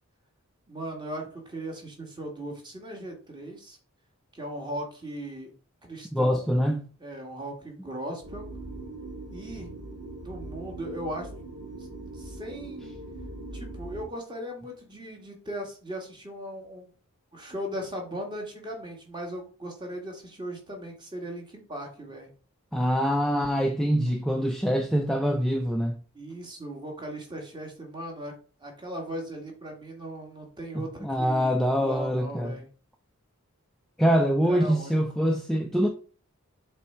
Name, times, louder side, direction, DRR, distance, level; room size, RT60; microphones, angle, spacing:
voice 1, 0.7-3.8 4.3-5.5 5.8-6.5 7.0-8.4 9.3-9.7 10.2-11.3 11.8-11.9 12.1-12.9 13.5-16.8 17.3-22.3 26.1-28.3 28.6-32.6 34.2-35.0, right 1 dB, 20° right, 1.5 m, -38 dB
voice 2, 6.1-6.8 22.7-26.0 30.7-32.6 34.0-35.9, equal, ahead, 0.4 m, -24 dB
sound 1, 8.2-14.1, right 2 dB, 85° right, 2.2 m, -41 dB
7.3 x 3.5 x 4.3 m
head